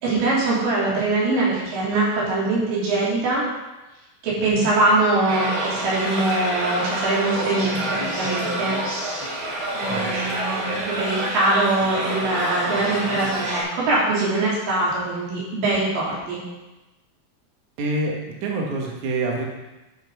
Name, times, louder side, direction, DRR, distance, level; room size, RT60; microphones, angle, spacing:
voice 1, 0.0-3.4 4.2-8.7 9.7-16.4, right 2 dB, 90° right, -7 dB, 5.5 m, -22 dB
sound 1, 5.3-13.6, right 1 dB, 40° right, 3.1 m, -27 dB
voice 2, 17.8-19.4, right 2 dB, 55° right, -1 dB, 2.3 m, -26 dB
11.5 x 5.8 x 5.5 m, 1.0 s
omnidirectional pair, 5.0 m